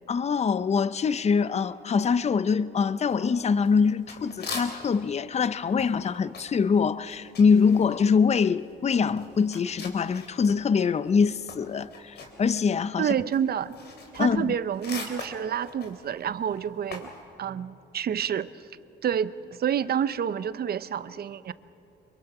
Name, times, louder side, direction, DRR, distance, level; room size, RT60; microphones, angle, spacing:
voice 1, 0.1-13.1 14.2-14.6, left 5 dB, 35° left, 0.6 m, -24 dB
sound 1, 3.1-5.1 5.4-10.6 10.9-17.2, left 4 dB, 55° left, 3.6 m, -42 dB
voice 2, 13.0-13.7 14.1-17.1 17.4-18.7 19.0-19.3 19.6-21.5, right 8 dB, 50° right, 0.7 m, -28 dB
25.0 x 23.0 x 6.0 m
cardioid pair, 90°, 20 cm